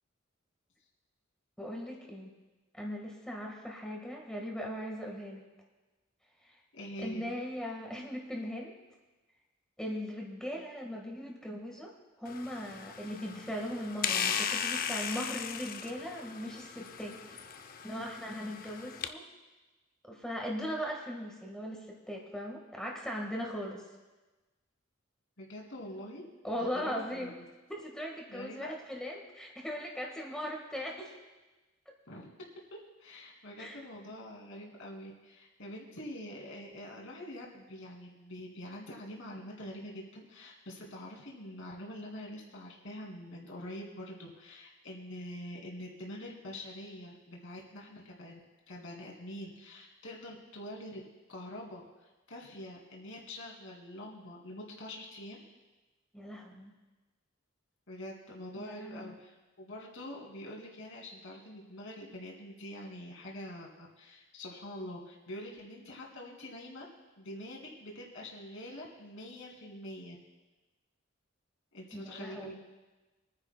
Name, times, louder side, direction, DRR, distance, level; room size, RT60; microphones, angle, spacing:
voice 1, 1.6-2.3 2.7-5.4 7.0-8.8 9.8-11.9 12.2-17.4 17.8-19.2 20.1-23.8 26.4-27.3 27.7-31.1 33.6-33.8 56.1-56.7 58.6-59.1 71.9-72.5, equal, 5° left, -1 dB, 1.5 m, -39 dB
voice 2, 6.7-7.3 25.4-26.2 26.6-27.4 28.3-28.7 32.1-32.4 33.0-48.4 48.7-51.0 51.3-55.4 57.9-66.8 67.2-70.2 71.7-72.5, left 1 dB, 70° left, -2 dB, 2.5 m, -45 dB
sound 1, 12.3-19.1, left 7 dB, 45° left, 0.5 m, -37 dB
26.0 x 9.9 x 2.2 m, 1.2 s
head